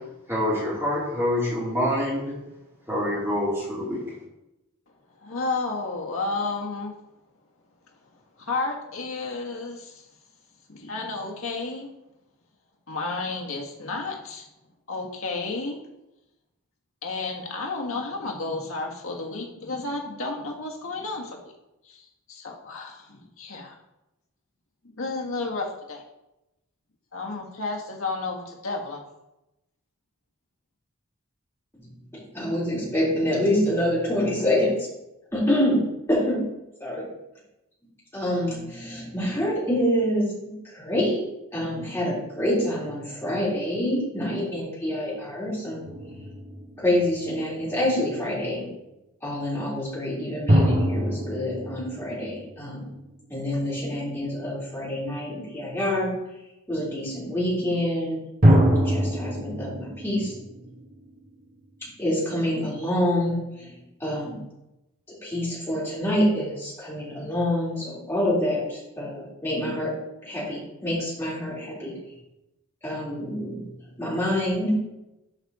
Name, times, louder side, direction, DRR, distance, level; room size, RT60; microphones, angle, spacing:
voice 1, 0.3-2.3 2.9-4.0, left 1 dB, 10° right, -8 dB, 2.9 m, -26 dB
voice 2, 5.2-6.9 8.4-10.0 10.7-11.9 12.9-14.5 14.9-15.8 17.0-21.5 21.8-23.8 24.8-26.0 27.1-29.0, left 3 dB, 80° left, 0 dB, 1.6 m, -32 dB
voice 3, 32.3-34.7 35.3-35.8 36.1-36.4 36.8-37.1 38.1-41.2 41.5-45.9 46.8-48.7 49.2-52.8 53.3-56.1 56.7-60.3 62.0-63.7 64.0-64.3 65.2-69.9 70.2-71.9 72.8-73.6 74.0-74.8, left 1 dB, 10° left, -8 dB, 3.4 m, -26 dB
sound 1, 45.8-47.5 50.5-53.2 58.4-61.4, equal, 40° right, 2.1 m, -24 dB
11.5 x 4.8 x 4.2 m, 0.92 s
head